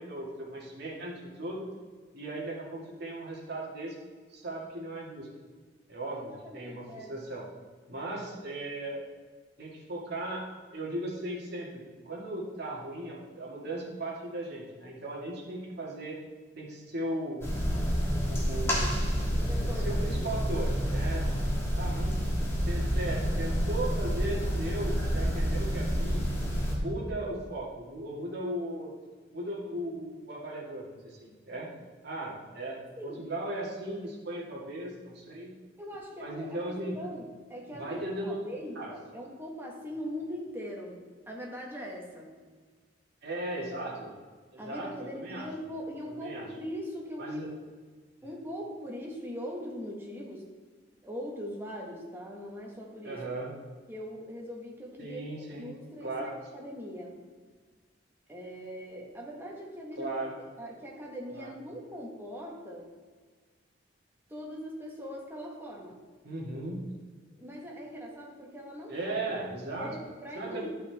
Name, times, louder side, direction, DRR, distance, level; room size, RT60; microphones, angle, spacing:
voice 1, 0.0-1.7 2.1-4.0 4.3-5.3 5.9-7.4 7.9-9.0 9.6-10.5 10.7-16.2 16.6-17.4 18.3-19.0 19.6-21.3 21.7-22.2 22.7-26.2 26.7-28.9 29.3-31.7 32.0-35.5 36.2-37.0 37.7-38.4 38.8-38.9 43.2-44.1 44.5-45.5 46.1-46.5 47.2-47.5 53.0-53.5 55.0-55.7 56.0-56.4 60.0-60.3 61.3-61.5 66.2-66.9 68.9-69.9 70.4-70.7, right 1 dB, 60° right, -3 dB, 2.1 m, -37 dB
voice 2, 6.1-7.2 19.3-20.3 33.0-33.3 35.8-42.3 44.6-47.4 48.2-50.5 51.0-53.2 53.9-55.2 55.6-57.2 58.3-60.1 60.6-62.9 64.3-66.0 67.4-69.2 69.8-70.7, equal, 10° right, -1 dB, 1.4 m, -41 dB
sound 1, 17.4-26.8, equal, 15° left, 1.6 m, -29 dB
11.5 x 5.7 x 3.5 m, 1.5 s
head